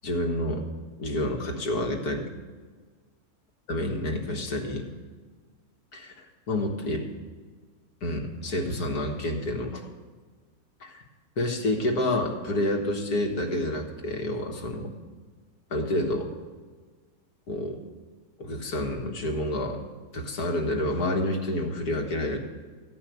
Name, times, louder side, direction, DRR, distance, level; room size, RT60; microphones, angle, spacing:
voice 1, 0.0-0.6 1.0-2.3 3.7-4.9 5.9-7.1 8.0-9.8 10.8-11.0 11.4-14.9 15.7-16.3 17.5-17.8 18.4-19.8 20.1-22.4, left 1 dB, 90° left, 1 dB, 2.1 m, -29 dB
14.5 x 5.6 x 9.3 m, 1.5 s
omnidirectional pair, 1.6 m